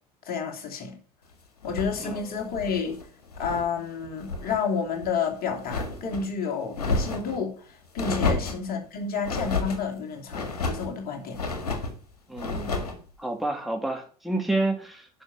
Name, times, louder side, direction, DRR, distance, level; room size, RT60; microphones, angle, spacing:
voice 1, 0.2-1.0 1.6-3.0 3.4-7.7 7.9-11.4, left 5 dB, 50° left, 3.0 m, -30 dB
sound 1, 1.6-3.7 4.0-4.6 5.0-6.3 6.7-7.4 8.0-8.6 9.2-9.8 10.3-10.9 11.3-12.0 12.4-13.0, left 3 dB, 85° left, 1.8 m, -30 dB
voice 2, 12.3-12.8 13.2-15.2, right 2 dB, ahead, 2.0 m, -30 dB
11.0 x 5.4 x 5.6 m
hypercardioid pair, 70°, 19 cm